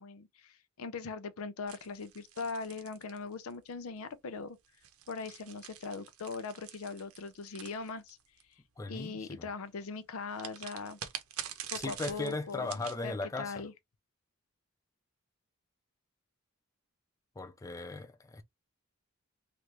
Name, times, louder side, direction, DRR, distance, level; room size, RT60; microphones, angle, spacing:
voice 1, 0.0-4.6 5.1-8.2 8.9-11.0 11.7-12.7 13.0-13.7, left 4 dB, 70° left, 0.5 m, -40 dB
sound 1, 1.7-3.7 4.6-8.4 10.3-13.0, right 10 dB, 70° right, 0.7 m, -45 dB
voice 2, 8.8-9.5 11.7-13.6 17.4-18.4, left 2 dB, 15° left, 0.4 m, -38 dB
3.3 x 2.5 x 2.9 m
head